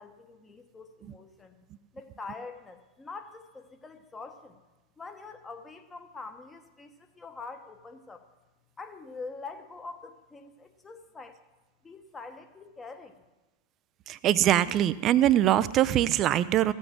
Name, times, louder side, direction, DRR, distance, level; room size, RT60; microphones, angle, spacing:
voice 1, 0.0-1.6 1.9-4.6 5.0-8.3 8.8-11.4 11.8-13.2, left 4 dB, 15° left, 7 dB, 1.0 m, -44 dB
voice 2, 14.1-16.7, right 12 dB, 35° right, 17 dB, 0.4 m, -23 dB
15.5 x 7.2 x 6.2 m, 1.1 s
figure-of-eight pair, 90°, 0 cm